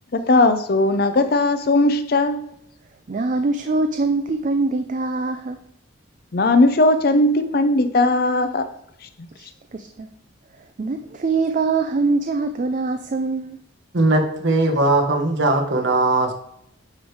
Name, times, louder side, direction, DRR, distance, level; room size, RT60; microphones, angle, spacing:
voice 1, 0.1-2.4 6.3-8.7, left 2 dB, 45° left, 10 dB, 0.5 m, -18 dB
voice 2, 3.1-5.6 9.4-10.1 10.8-13.6, right 3 dB, 40° right, 7 dB, 0.4 m, -23 dB
voice 3, 13.9-16.3, right 2 dB, 60° right, 3 dB, 1.2 m, -19 dB
9.3 x 3.3 x 4.7 m, 0.77 s
head